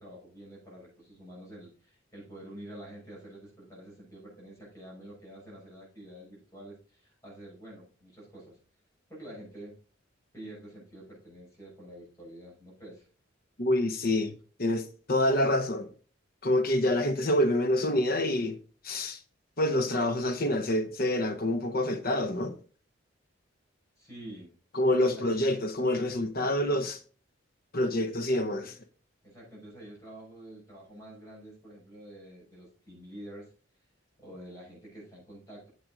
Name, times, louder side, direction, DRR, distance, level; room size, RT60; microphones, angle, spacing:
voice 1, 0.0-8.6 9.1-9.8 10.3-13.1 24.0-24.6 25.1-25.6 29.2-33.5 34.2-35.7, right 1 dB, 15° left, 5.9 m, -47 dB
voice 2, 13.6-14.3 14.6-15.9 16.4-18.6 18.8-19.2 19.6-22.6 24.7-27.0 27.7-28.7, left 1 dB, 50° left, 0.9 m, -27 dB
8.9 x 7.9 x 3.9 m
head